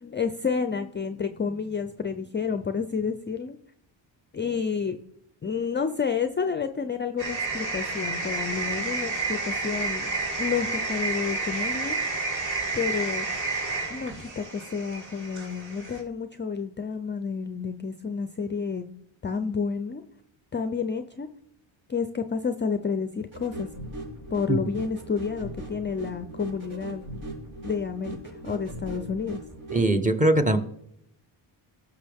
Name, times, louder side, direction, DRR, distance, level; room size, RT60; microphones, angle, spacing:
voice 1, 0.0-3.6 4.3-5.0 5.4-10.1 10.4-12.0 12.7-13.3 13.9-18.9 19.2-20.0 20.5-21.3 21.9-23.7 24.3-27.0 27.6-28.2 28.4-29.4, left 5 dB, 25° left, 9 dB, 0.5 m, -30 dB
sound 1, 7.2-16.0, right 3 dB, 35° right, 2.9 m, -30 dB
sound 2, 23.3-29.9, right 1 dB, 70° right, 5.0 m, -39 dB
voice 2, 29.7-30.6, right 1 dB, 15° right, 7 dB, 1.0 m, -21 dB
17.0 x 6.1 x 3.5 m, 0.72 s
cardioid pair, 130°, 49 cm